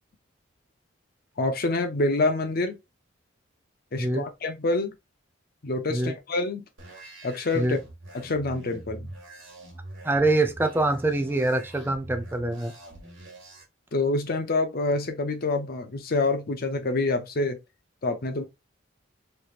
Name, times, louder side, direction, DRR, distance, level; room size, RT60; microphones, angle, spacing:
voice 1, 1.4-2.8 3.9-4.9 5.6-6.6 7.2-7.8 8.1-9.1 13.9-17.6 18.0-18.4, left 2 dB, 50° left, 0.6 m, -26 dB
sound 1, 6.8-13.6, right 1 dB, 85° right, 1.5 m, -44 dB
voice 2, 10.0-12.7, right 2 dB, 10° right, 0.4 m, -25 dB
3.2 x 3.0 x 2.4 m
head